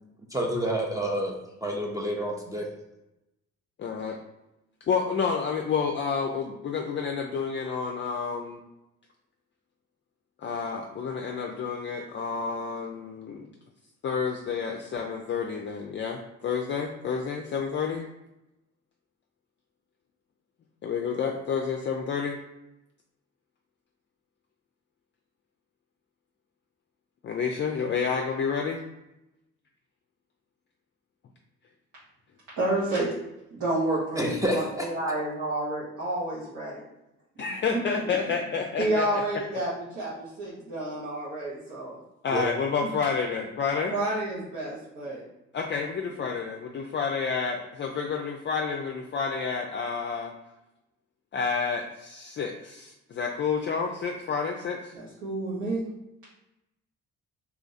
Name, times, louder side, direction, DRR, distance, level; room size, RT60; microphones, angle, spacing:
voice 1, 0.3-1.3 1.6-2.7 34.2-34.9 42.3-42.5, right 1 dB, 10° right, -1 dB, 0.5 m, -28 dB
voice 2, 3.8-4.2 4.9-8.6 10.4-13.5 14.0-18.1 20.8-22.4 27.2-28.8 37.4-39.2 39.5-39.7 42.2-44.0 45.5-50.3 51.3-54.9, left 5 dB, 40° left, 2 dB, 0.4 m, -29 dB
voice 3, 32.6-33.1 33.5-36.8 37.4-38.2 38.8-42.0 42.8-42.9 43.9-45.2 46.1-46.2 54.9-55.8, right 1 dB, 85° right, -9 dB, 1.2 m, -30 dB
2.8 x 2.5 x 4.0 m, 0.92 s
cardioid pair, 90°, 30 cm